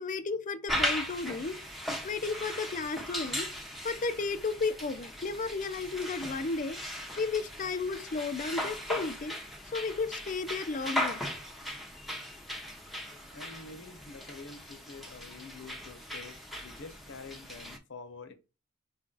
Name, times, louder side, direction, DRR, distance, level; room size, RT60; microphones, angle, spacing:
voice 1, 0.0-1.6 2.0-3.5 3.8-6.8 7.2-9.3 9.7-11.2, left 4 dB, 35° left, 0.5 m, -33 dB
sound 1, 0.7-17.8, left 1 dB, ahead, 0.8 m, -38 dB
voice 2, 13.3-18.3, left 3 dB, 55° left, 0.9 m, -47 dB
4.9 x 2.4 x 3.8 m
head